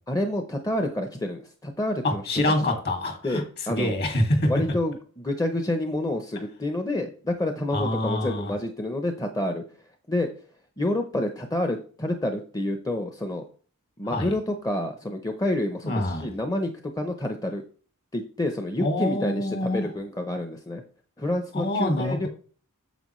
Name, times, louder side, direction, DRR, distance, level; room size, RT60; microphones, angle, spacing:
voice 1, 0.1-2.2 2.6-2.7 3.2-4.0 4.4-9.6 10.1-10.3 10.8-13.4 14.0-16.7 17.0-17.6 18.1-20.8 21.2-22.3, left 1 dB, 15° left, 6 dB, 0.7 m, -28 dB
voice 2, 2.0-3.4 3.7-4.5 7.7-8.5 14.1-14.3 15.8-16.3 18.8-19.9 21.5-22.3, left 1 dB, 50° left, 4 dB, 2.2 m, -25 dB
9.1 x 7.1 x 3.1 m, 0.41 s
head